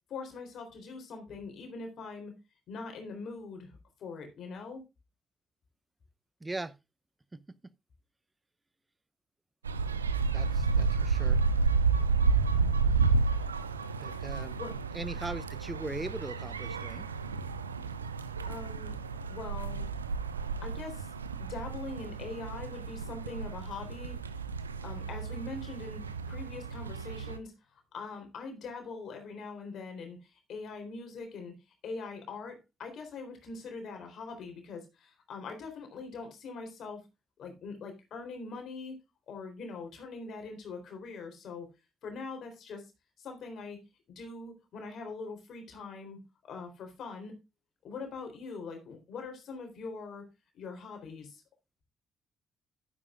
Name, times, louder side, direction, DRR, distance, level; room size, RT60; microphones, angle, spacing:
voice 1, 0.1-2.3 2.7-3.7 4.0-4.8 14.6-14.7 18.5-18.9 19.3-19.8 20.6-21.1 21.4-24.2 24.8-31.6 31.8-37.0 37.4-39.0 39.3-41.7 42.0-42.8 43.2-43.8 44.1-47.3 47.8-50.2 50.5-51.4, left 4 dB, 55° left, 3.6 m, -42 dB
voice 2, 6.4-6.8 7.3-7.4 10.3-11.4 14.0-14.6 14.9-17.1, right 2 dB, 20° right, 0.6 m, -40 dB
sound 1, 9.6-27.4, right 4 dB, 85° right, 0.5 m, -31 dB
11.0 x 9.9 x 2.4 m
figure-of-eight pair, 40°, 0 cm